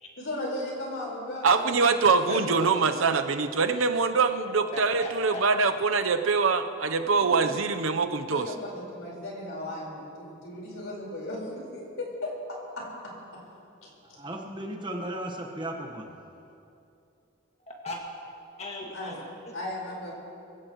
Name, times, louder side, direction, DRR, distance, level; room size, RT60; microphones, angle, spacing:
voice 1, 0.2-3.0 7.2-7.5 8.3-13.4 13.8-14.2 18.9-19.1 19.5-20.2, left 1 dB, 90° left, -3 dB, 4.6 m, -37 dB
voice 2, 1.4-8.5, right 4 dB, 85° right, 8 dB, 0.8 m, -24 dB
voice 3, 4.7-5.4 17.7-18.0 18.6-19.6, left 1 dB, 30° left, -1 dB, 2.1 m, -37 dB
voice 4, 14.0-16.1, right 1 dB, 25° right, 2 dB, 1.3 m, -36 dB
23.0 x 16.0 x 3.1 m, 2.7 s
head